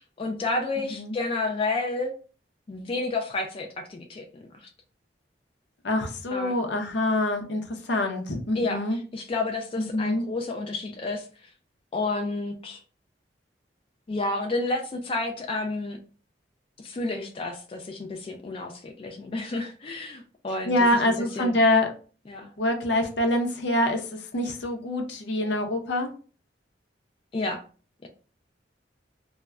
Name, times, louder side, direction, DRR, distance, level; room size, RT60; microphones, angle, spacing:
voice 1, 0.2-2.1 2.7-4.7 6.3-6.5 8.6-8.8 9.1-11.2 11.9-12.8 14.1-16.0 16.8-21.6 22.3-22.5 27.3-27.6, left 2 dB, 30° left, 3 dB, 0.3 m, -30 dB
voice 2, 5.8-9.0 9.8-10.2 20.6-21.9 22.6-26.1, left 1 dB, 80° left, 4 dB, 0.6 m, -25 dB
2.1 x 2.1 x 3.5 m, 0.37 s
head